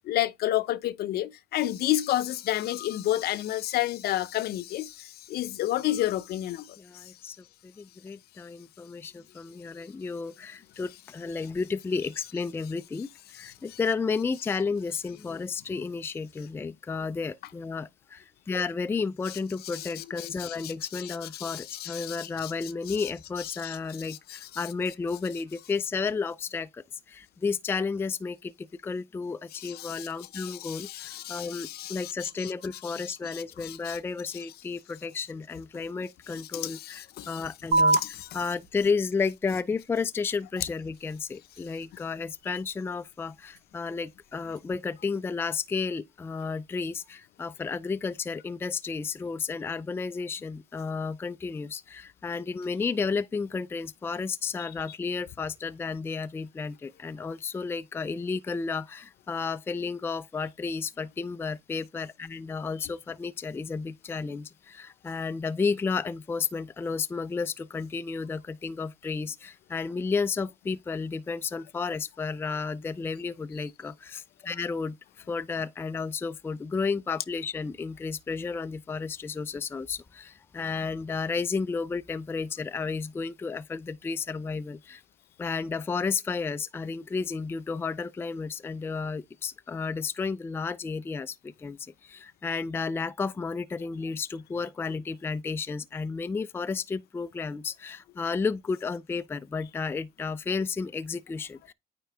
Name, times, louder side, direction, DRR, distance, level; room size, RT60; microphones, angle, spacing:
voice 1, 0.1-6.8 13.4-13.8 19.7-22.5 22.9-23.0 23.6-23.8 24.0-24.6 29.6-30.1 30.3-32.5 32.8-34.0 36.3-37.4 37.9-38.3 42.5-42.6 54.6-54.7, left 14 dB, 70° left, 0.7 m, -31 dB
voice 2, 6.8-7.4 7.8-38.0 38.3-75.0 75.3-85.0 85.4-101.7, left 5 dB, 15° left, 0.3 m, -32 dB
sound 1, 37.7-44.7, right 2 dB, 75° right, 2.7 m, -33 dB
9.2 x 3.7 x 3.4 m
cardioid pair, 110°, 17 cm